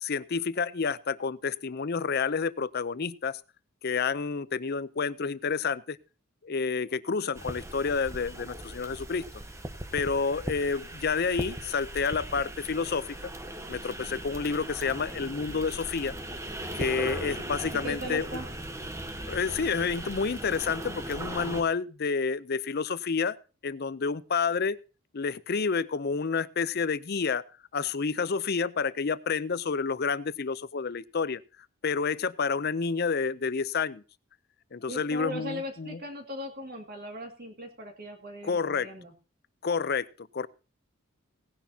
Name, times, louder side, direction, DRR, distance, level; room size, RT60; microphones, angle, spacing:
voice 1, 0.0-3.4 3.8-6.0 6.4-9.2 9.9-13.3 13.7-16.1 16.8-18.3 19.3-23.4 23.6-24.8 25.1-27.4 27.7-31.4 31.8-34.0 34.7-36.0 38.4-38.9 39.6-40.5, left 5 dB, 50° left, 17 dB, 0.5 m, -29 dB
sound 1, 7.3-21.6, right 1 dB, 15° right, 1.0 m, -38 dB
voice 2, 17.7-18.5 34.8-39.1, equal, 45° right, 3 dB, 2.2 m, -39 dB
18.0 x 10.0 x 2.8 m, 0.33 s
head